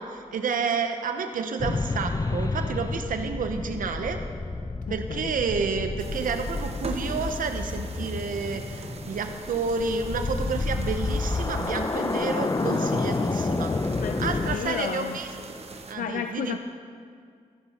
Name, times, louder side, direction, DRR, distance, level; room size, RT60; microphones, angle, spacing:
voice 1, 0.0-4.2 4.9-13.7 14.2-15.3 15.9-16.6, right 5 dB, 80° right, 7 dB, 0.8 m, -30 dB
sound 1, 1.6-14.6, left 3 dB, 25° left, 0.5 m, -30 dB
voice 2, 4.9-5.4 13.7-15.2 15.9-16.6, left 8 dB, 75° left, 8 dB, 0.4 m, -33 dB
sound 2, 6.0-16.0, right 3 dB, 50° right, 1.0 m, -42 dB
15.0 x 9.8 x 4.3 m, 2.2 s
cardioid pair, 75°, 14 cm